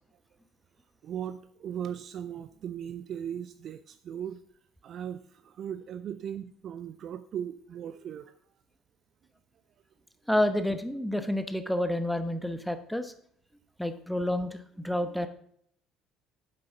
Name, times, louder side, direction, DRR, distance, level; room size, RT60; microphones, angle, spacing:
voice 1, 1.0-4.4 4.8-8.3, right 9 dB, 50° right, 11 dB, 0.4 m, -38 dB
voice 2, 10.3-13.1 13.8-15.3, left 1 dB, ahead, 9 dB, 1.0 m, -29 dB
10.0 x 7.6 x 3.7 m, 0.65 s
figure-of-eight pair, 55°, 0 cm